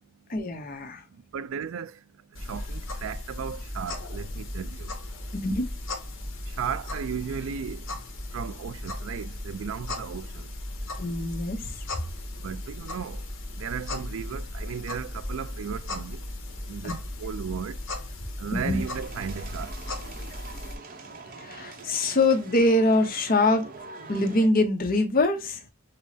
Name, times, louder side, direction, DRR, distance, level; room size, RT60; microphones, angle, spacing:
voice 1, 0.3-1.0 5.3-5.7 11.0-11.8 16.8-16.9 18.5-18.8 21.4-23.7 24.1-25.6, left 2 dB, 45° left, 0.8 m, -24 dB
voice 2, 1.3-2.0 2.5-4.9 6.5-7.8 8.3-10.5 12.4-13.2 13.5-16.2 16.7-17.8 18.4-19.7, right 7 dB, 80° right, 0.4 m, -35 dB
sound 1, 2.3-20.7, left 1 dB, 65° left, 1.0 m, -36 dB
sound 2, 18.6-24.5, right 4 dB, 45° right, 0.7 m, -44 dB
5.4 x 2.0 x 2.7 m
head